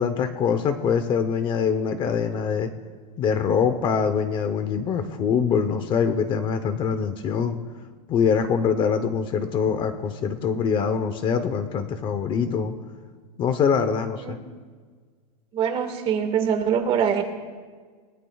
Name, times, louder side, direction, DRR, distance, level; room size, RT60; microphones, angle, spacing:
voice 1, 0.0-2.7 3.2-7.6 8.1-12.7 13.4-14.4, left 6 dB, 25° left, 9 dB, 0.8 m, -24 dB
voice 2, 15.5-17.2, right 8 dB, 30° right, 5 dB, 1.7 m, -23 dB
29.0 x 17.0 x 2.4 m, 1.5 s
supercardioid pair, 160°, 20 cm